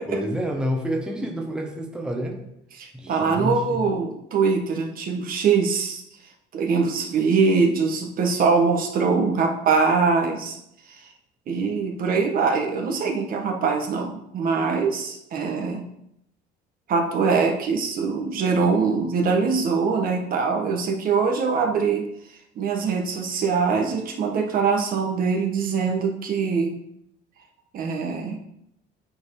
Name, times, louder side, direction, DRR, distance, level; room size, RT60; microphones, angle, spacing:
voice 1, 0.1-2.4 2.9-3.8, equal, 5° right, 1 dB, 1.2 m, -28 dB
voice 2, 2.8-6.0 6.5-10.6 10.9-11.0 11.5-15.9 16.9-22.0 22.6-26.8 27.7-28.4, right 5 dB, 55° right, 2 dB, 1.5 m, -23 dB
8.5 x 4.5 x 4.9 m, 0.77 s
cardioid pair, 115°, 18 cm